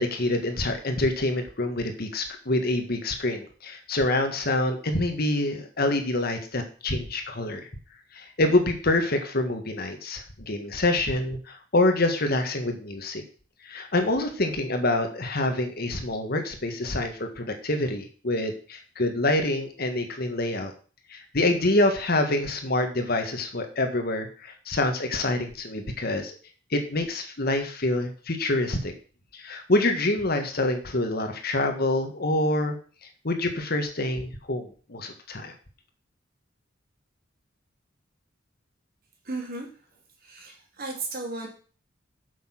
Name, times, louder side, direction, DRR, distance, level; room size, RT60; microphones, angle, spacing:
voice 1, 0.0-7.7 8.1-13.2 13.6-20.7 21.1-26.3 26.7-28.9 29.3-32.8 33.2-35.5, left 2 dB, 55° left, 6 dB, 1.6 m, -26 dB
voice 2, 39.2-39.7 40.2-41.5, right 3 dB, 50° right, 1 dB, 3.0 m, -34 dB
7.8 x 7.1 x 5.9 m, 0.40 s
head